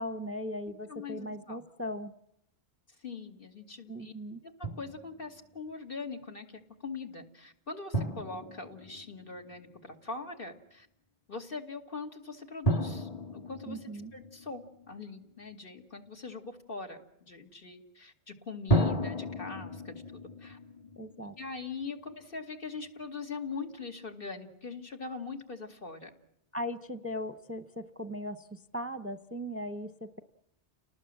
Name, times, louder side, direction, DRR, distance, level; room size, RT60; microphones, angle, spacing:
voice 1, 0.0-2.1 3.9-4.4 13.7-14.1 21.0-21.3 26.5-30.2, equal, 15° right, 10 dB, 0.8 m, -38 dB
voice 2, 0.9-1.6 3.0-4.1 4.4-10.9 11.3-20.0 20.4-20.6 21.4-26.1, left 4 dB, 55° left, 3 dB, 2.4 m, -42 dB
Drum, 4.6-5.4 7.9-9.7 12.6-15.1 18.7-21.8, right 1 dB, 35° left, 1.7 m, -33 dB
30.0 x 19.0 x 7.6 m, 0.79 s
omnidirectional pair, 1.1 m